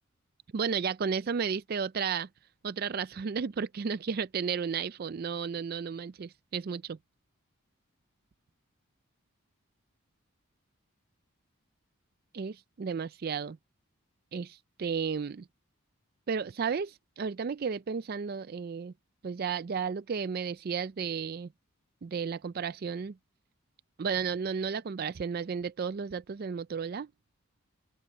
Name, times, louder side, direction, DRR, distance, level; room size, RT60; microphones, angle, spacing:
voice 1, 0.5-2.3 2.6-7.0 12.3-13.6 14.3-15.4 16.3-18.9 19.2-21.5 22.0-23.1 24.0-27.1, right 6 dB, 45° right, 0.4 m, -33 dB
open air
head